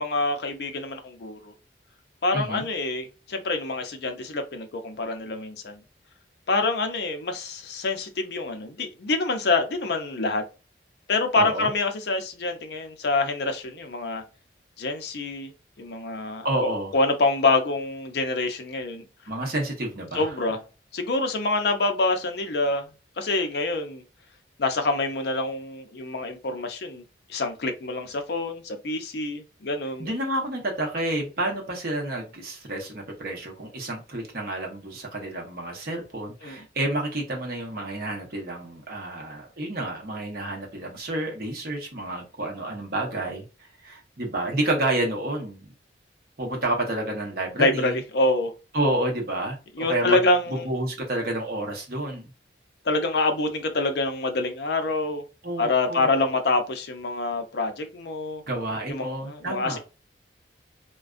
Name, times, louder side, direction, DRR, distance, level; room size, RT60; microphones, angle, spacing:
voice 1, 0.0-1.5 2.2-5.8 6.5-10.4 11.1-14.2 14.8-15.5 15.8-19.1 20.1-20.6 20.9-22.9 23.2-24.0 24.6-27.0 27.3-30.1 36.4-36.6 47.6-48.5 49.8-50.7 52.8-55.2 55.6-58.4 58.9-59.8, left 2 dB, 60° left, 0.5 m, -26 dB
voice 2, 2.3-2.7 11.4-11.7 16.4-16.9 19.3-20.3 30.0-45.7 46.4-48.0 48.7-50.2 50.6-52.3 55.4-56.1 58.5-59.8, right 1 dB, 50° right, 0.9 m, -29 dB
2.5 x 2.2 x 2.4 m
head